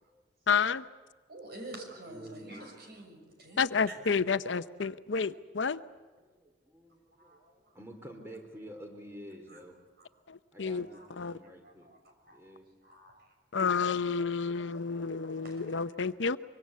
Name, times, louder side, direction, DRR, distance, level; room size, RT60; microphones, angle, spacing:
voice 1, 0.5-0.8 3.6-5.8 10.3-10.9 11.2-11.4 13.5-16.4, left 5 dB, 70° left, 13 dB, 0.7 m, -30 dB
voice 2, 1.3-4.0 7.2-7.4 9.5-9.6 10.0-10.1 10.9-11.1 11.6-12.0 12.3-12.4 12.8-13.3 14.5-16.0, right 2 dB, 55° right, 3 dB, 6.4 m, -49 dB
voice 3, 2.0-2.6 4.0-4.1 6.4-9.7 10.5-11.9 12.3-12.6, equal, 15° right, 3 dB, 4.0 m, -49 dB
25.0 x 24.0 x 8.4 m, 1.4 s
head